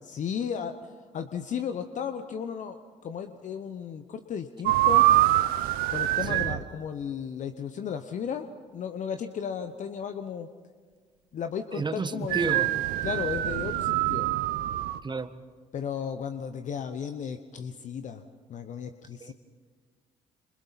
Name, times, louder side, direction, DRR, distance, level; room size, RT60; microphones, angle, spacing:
voice 1, 0.1-2.8 3.0-5.1 5.9-8.5 8.7-10.5 11.3-14.3 15.7-18.2 18.5-19.3, left 7 dB, 55° left, 8 dB, 1.0 m, -34 dB
sound 1, 4.7-6.6 12.3-15.0, right 14 dB, 75° right, 0.8 m, -24 dB
voice 2, 11.7-12.7 15.0-15.3 19.2-19.3, right 4 dB, 30° right, 11 dB, 1.4 m, -31 dB
26.5 x 26.0 x 4.2 m, 1.5 s
hypercardioid pair, 55°, 15 cm